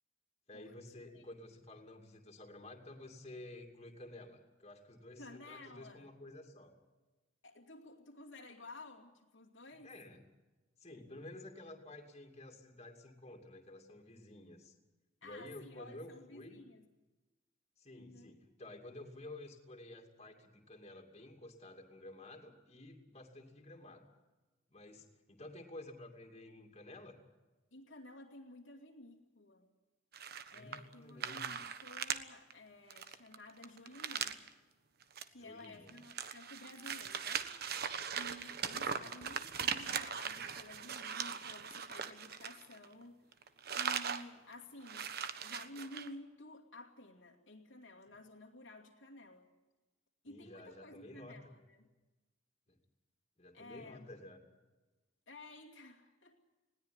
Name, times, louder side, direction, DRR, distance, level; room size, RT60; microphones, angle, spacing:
voice 1, 0.5-6.7 9.8-10.2 10.8-14.8 15.2-16.6 17.8-24.0 24.7-27.2 30.5-31.6 35.4-36.0 38.6-39.0 50.3-51.3 52.7-52.8 53.4-54.4, left 1 dB, 35° left, 2 dB, 2.6 m, -52 dB
voice 2, 5.2-6.1 7.4-9.9 15.2-16.9 17.9-18.3 27.7-29.7 30.5-34.4 35.3-37.5 38.1-43.5 43.7-45.1 45.4-49.5 50.2-51.9 53.5-54.1 55.3-56.4, left 2 dB, 85° left, -1 dB, 2.6 m, -53 dB
sound 1, 30.1-30.9 31.2-32.2 32.5-32.6 32.9-34.5 35.0-35.2 35.6-43.0 43.3-44.2 44.5-44.6 44.8-46.1, right 7 dB, 55° right, 1.3 m, -40 dB
20.5 x 17.5 x 9.6 m, 1.2 s
head